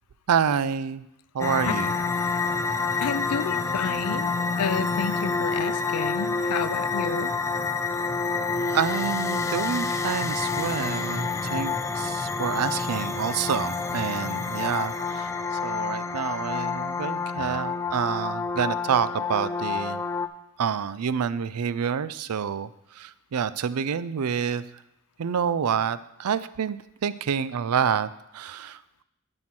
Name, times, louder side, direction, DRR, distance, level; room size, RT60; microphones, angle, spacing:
voice 1, 0.3-1.1 1.3-1.9 8.7-20.0 20.6-24.6 25.2-28.8, right 7 dB, 85° right, 15 dB, 0.4 m, -28 dB
sound 1, 1.4-20.3, left 4 dB, 15° left, 0.3 m, -28 dB
voice 2, 3.0-7.3, left 6 dB, 85° left, 15 dB, 0.4 m, -30 dB
10.5 x 4.4 x 6.0 m, 0.86 s
head